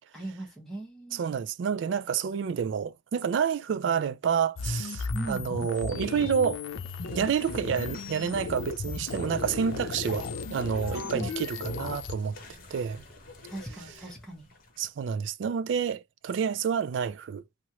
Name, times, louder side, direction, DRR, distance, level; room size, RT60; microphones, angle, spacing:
voice 1, 0.1-1.2 5.1-5.4 11.0-11.3 13.5-14.5, right 2 dB, ahead, 1.1 m, -39 dB
voice 2, 1.1-6.6 7.1-12.4 12.7-13.0 14.8-17.4, right 7 dB, 65° right, 0.3 m, -29 dB
sound 1, 4.6-12.1, left 4 dB, 85° left, 0.5 m, -35 dB
sound 2, 6.7-15.0, left 2 dB, 45° left, 1.0 m, -49 dB
3.0 x 2.5 x 2.8 m
head